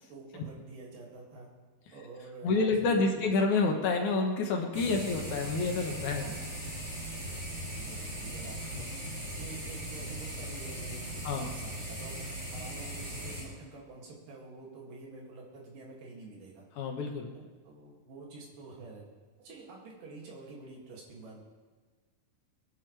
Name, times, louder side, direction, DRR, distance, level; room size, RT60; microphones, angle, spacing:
voice 1, 0.1-1.5 1.9-3.2 4.9-5.2 6.2-6.6 7.4-9.0 9.4-12.2 12.5-16.6 17.4-19.1 19.4-21.4, right 3 dB, 70° right, -3 dB, 4.0 m, -48 dB
voice 2, 2.4-6.3 8.7-8.8 11.2-11.5 16.8-17.3, left 3 dB, 65° left, 2 dB, 2.4 m, -28 dB
sound 1, 4.7-13.4, equal, 35° right, 5.0 m, -39 dB
22.0 x 10.5 x 3.4 m, 1.4 s
omnidirectional pair, 4.0 m